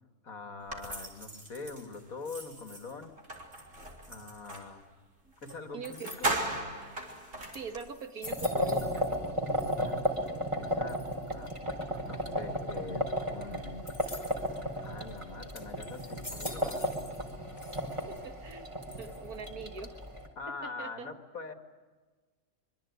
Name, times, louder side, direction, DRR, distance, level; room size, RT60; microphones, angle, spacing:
voice 1, 0.2-3.1 4.1-4.8 5.4-6.3 9.8-9.9 10.6-11.0 11.3-11.5 12.0-13.9 14.8-16.9 20.4-21.5, left 4 dB, 65° left, 7 dB, 2.5 m, -43 dB
sound 1, 0.7-4.7 5.4-5.6 5.8-7.9, right 2 dB, 50° right, 4.4 m, -38 dB
voice 2, 5.7-6.1 7.5-9.1 18.1-20.0 20.6-21.1, right 5 dB, 70° right, 7 dB, 2.3 m, -43 dB
sound 2, 5.8-6.6 7.2-7.3 7.5-9.3 9.5-10.2 10.9-11.3 13.9-14.5 15.1-15.2 15.5-17.3 17.6-18.2 18.9-19.5, left 2 dB, 25° left, 2.2 m, -47 dB
sound 3, 8.2-20.3, left 1 dB, 20° right, 4.1 m, -34 dB
25.0 x 23.5 x 9.6 m, 1.4 s
omnidirectional pair, 1.6 m